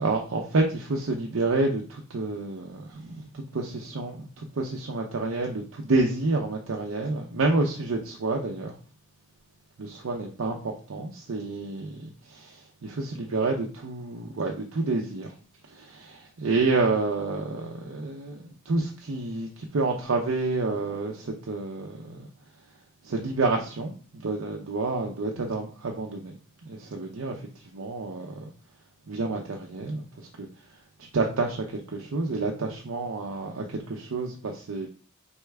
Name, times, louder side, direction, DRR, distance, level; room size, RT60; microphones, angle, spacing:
voice 1, 0.0-8.8 9.8-15.3 15.7-22.3 23.0-26.4 26.6-28.5 29.1-30.5 31.0-34.9, right 3 dB, 85° right, 0.6 m, -29 dB
4.4 x 3.4 x 3.3 m
head